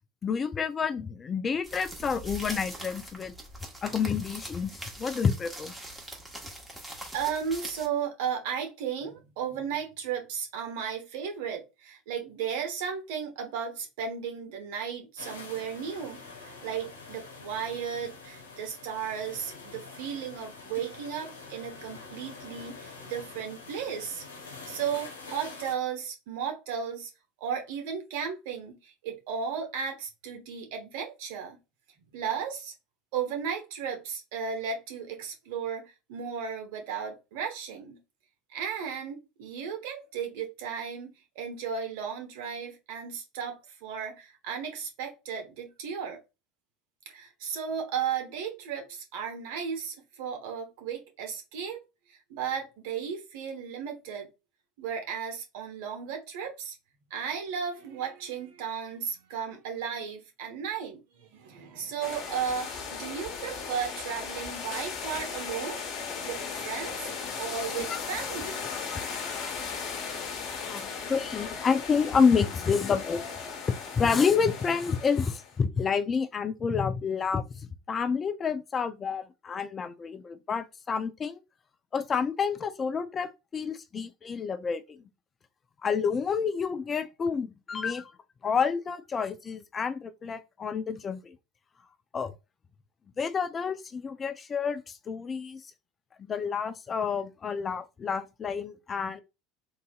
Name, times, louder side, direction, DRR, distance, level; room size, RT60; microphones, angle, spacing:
voice 1, 0.2-3.3 3.8-5.7 67.9-68.0 70.7-73.2 74.0-77.4 77.9-81.4 81.9-85.0 85.8-88.1 88.4-91.3 92.1-92.3 93.2-95.6 96.2-99.2, left 6 dB, 30° left, 0.5 m, -29 dB
sound 1, 1.6-7.9, right 1 dB, 10° right, 1.3 m, -42 dB
voice 2, 7.1-27.1 27.4-31.6 32.1-32.7 33.1-38.0 38.5-46.2 47.1-51.8 52.1-54.3 54.8-56.7 57.1-65.8 66.2-68.7 70.6-71.1, right 7 dB, 65° right, 1.0 m, -35 dB
sound 2, 15.2-25.7, left 4 dB, 85° left, 0.9 m, -46 dB
sound 3, 62.0-75.6, left 6 dB, 50° left, 1.3 m, -37 dB
3.8 x 2.6 x 2.3 m
hypercardioid pair, 75°, 0 cm